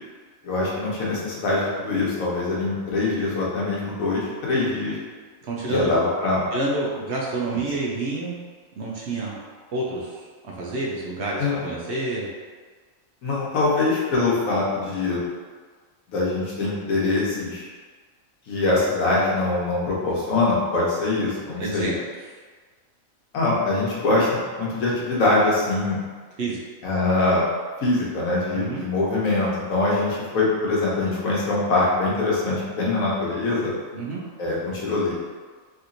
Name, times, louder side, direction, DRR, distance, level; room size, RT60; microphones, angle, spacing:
voice 1, 0.4-5.0 5.7-6.4 11.4-11.6 13.2-15.2 16.1-17.7 18.5-21.9 23.3-26.0 26.8-27.4 27.8-33.7 34.4-35.1, left 2 dB, 80° left, -5 dB, 1.3 m, -23 dB
voice 2, 5.4-5.9 6.5-8.3 8.8-9.4 9.7-12.3 21.6-21.9 26.4-26.6 28.5-28.8 33.9-34.2, right 2 dB, 65° right, -4 dB, 0.8 m, -28 dB
3.2 x 2.9 x 2.5 m, 1.5 s
omnidirectional pair, 1.4 m